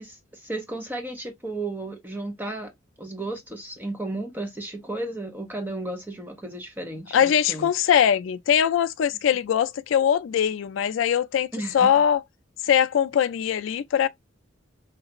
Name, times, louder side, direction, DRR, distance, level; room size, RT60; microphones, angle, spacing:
voice 1, 0.0-2.7 3.0-7.7 11.5-11.9, right 2 dB, 10° right, 0.8 m, -34 dB
voice 2, 7.1-11.5 11.7-12.2 12.6-14.1, left 8 dB, 70° left, 0.3 m, -21 dB
3.3 x 2.4 x 2.8 m
head